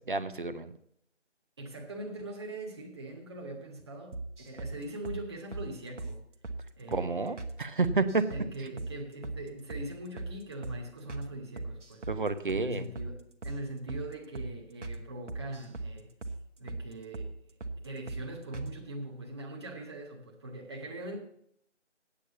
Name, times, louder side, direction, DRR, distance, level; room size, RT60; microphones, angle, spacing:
voice 1, 0.1-0.7 6.9-8.2 12.1-12.9, right 3 dB, 45° right, 11 dB, 0.8 m, -30 dB
voice 2, 1.6-6.2 6.8-7.4 8.3-12.1 12.5-16.1 16.6-17.3 17.8-21.2, right 1 dB, 20° right, 0 dB, 1.5 m, -41 dB
sound 1, 4.1-4.7 5.1-5.2 5.5-5.7 6.0-6.1 6.4-6.6 6.9-7.1 7.4-7.5 7.8-8.5 8.8-8.9 9.2-9.4 9.7-9.9 10.2-10.3 10.6-10.8 11.1-11.3 11.6-12.2 12.5-12.7 13.0-13.1 13.4-13.6 13.9-14.1 14.4-14.5 14.8-15.0 15.3-15.9 16.2-16.4 16.7-16.8 17.1-17.3 17.6-17.8 18.1-18.2 18.5-18.7, right 3 dB, 75° right, 1.4 m, -38 dB
8.7 x 8.6 x 6.9 m, 0.72 s
figure-of-eight pair, 160°, 36 cm